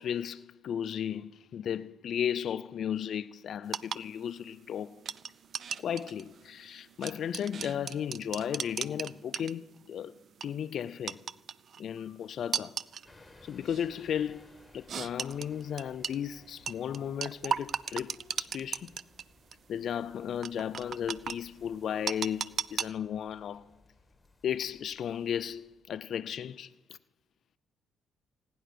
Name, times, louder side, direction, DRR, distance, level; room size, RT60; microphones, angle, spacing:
voice 1, 0.0-5.0 5.8-10.1 10.4-11.2 11.8-12.8 13.4-18.9 19.7-23.7 24.4-26.7, left 9 dB, 65° left, 0.4 m, -35 dB
sound 1, 3.7-9.9 10.3-10.5 11.1-11.8 12.5-13.1 13.7-13.9 14.9-16.2 16.7-19.2 19.5-19.6 20.4-21.4 22.1-22.9, right 7 dB, 55° right, 0.5 m, -35 dB
sound 2, 13.0-26.0, left 2 dB, 15° left, 1.9 m, -60 dB
17.0 x 10.0 x 6.6 m
cardioid pair, 90°, 0 cm